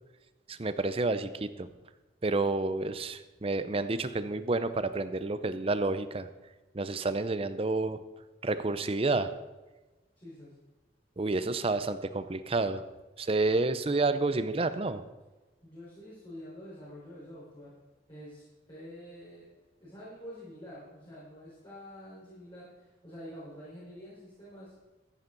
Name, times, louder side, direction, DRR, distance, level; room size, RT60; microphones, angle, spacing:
voice 1, 0.5-1.7 2.2-6.3 6.7-8.0 8.4-9.3 11.2-12.8 13.2-15.0, right 3 dB, 35° right, 12 dB, 0.6 m, -29 dB
voice 2, 10.2-10.5 15.6-17.7 18.1-19.4 19.8-24.7, equal, 30° left, -10 dB, 4.7 m, -47 dB
14.5 x 10.0 x 4.0 m, 1.2 s
head